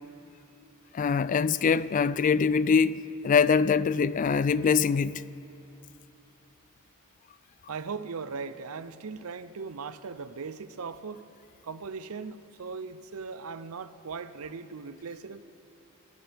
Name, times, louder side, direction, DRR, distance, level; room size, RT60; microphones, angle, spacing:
voice 1, 0.9-5.2, left 6 dB, 40° left, 0.3 m, -23 dB
voice 2, 7.7-11.2 11.6-15.4, right 5 dB, 80° right, 0.6 m, -38 dB
27.0 x 15.0 x 3.5 m
head